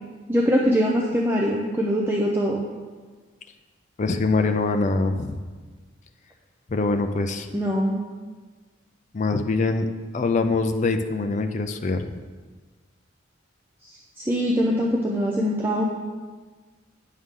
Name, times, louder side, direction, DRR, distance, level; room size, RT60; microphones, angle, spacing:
voice 1, 0.3-2.6 7.5-8.0 13.8-15.8, equal, 10° right, -3 dB, 0.6 m, -23 dB
voice 2, 4.0-5.4 6.7-7.5 9.1-9.9 10.1-12.1, left 3 dB, 35° left, 6 dB, 0.4 m, -23 dB
9.5 x 6.4 x 3.7 m, 1.4 s
head